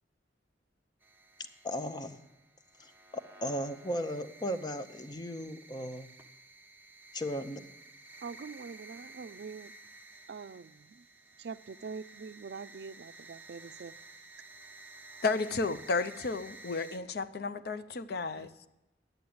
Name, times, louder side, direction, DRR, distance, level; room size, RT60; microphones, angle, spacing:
sound 1, 1.0-17.0, right 2 dB, 10° right, 1.1 m, -53 dB
voice 1, 1.6-2.2 2.8-6.1 7.1-7.7, equal, 25° left, 0.7 m, -36 dB
voice 2, 8.2-9.7 10.3-11.1 11.4-13.9 18.4-18.5, right 5 dB, 65° right, 0.4 m, -44 dB
voice 3, 15.2-18.5, left 3 dB, 60° left, 0.6 m, -32 dB
10.5 x 8.0 x 8.6 m
head